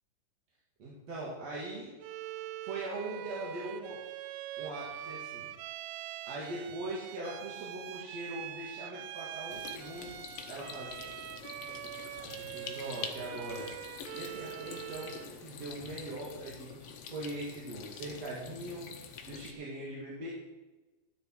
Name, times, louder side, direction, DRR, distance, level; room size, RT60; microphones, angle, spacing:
voice 1, 0.8-1.9 2.6-4.0 4.6-5.5 6.3-10.2 10.5-11.1 12.2-13.7 14.1-18.9 19.2-20.3, right 2 dB, 55° right, -5 dB, 3.0 m, -41 dB
Bowed string instrument, 2.0-15.4, right 13 dB, 85° right, 2.3 m, -43 dB
sound 1, 9.5-19.5, left 7 dB, 70° left, 1.5 m, -46 dB
13.5 x 8.9 x 4.6 m, 1.1 s
omnidirectional pair, 3.9 m